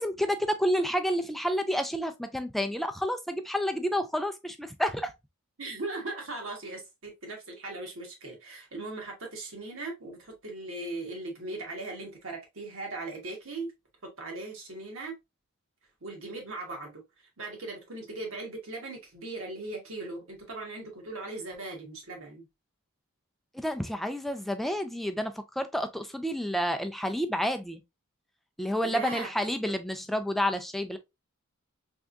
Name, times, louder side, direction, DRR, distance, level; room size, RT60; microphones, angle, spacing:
voice 1, 0.0-5.1 23.5-27.8 28.6-31.0, equal, ahead, 0.3 m, -29 dB
voice 2, 5.6-13.7 14.0-15.1 16.0-17.0 17.4-22.5 28.8-29.3, right 2 dB, 65° right, 1.5 m, -39 dB
3.5 x 3.4 x 2.5 m
head